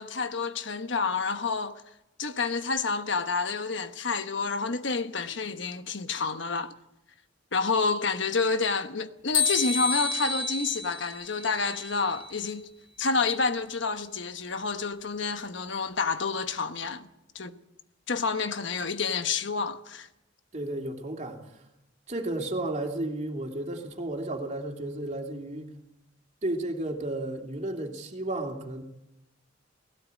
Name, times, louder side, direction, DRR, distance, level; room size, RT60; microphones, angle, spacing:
voice 1, 0.0-1.8 2.2-6.7 7.5-12.7 13.0-17.1 17.3-17.6 18.1-20.1, left 4 dB, 70° left, 1.2 m, -29 dB
sound 1, 9.3-12.4, left 4 dB, 50° left, 2.4 m, -30 dB
voice 2, 20.5-21.6 22.1-25.7 26.4-28.8, right 1 dB, 40° right, 2.7 m, -33 dB
19.0 x 17.0 x 8.4 m
head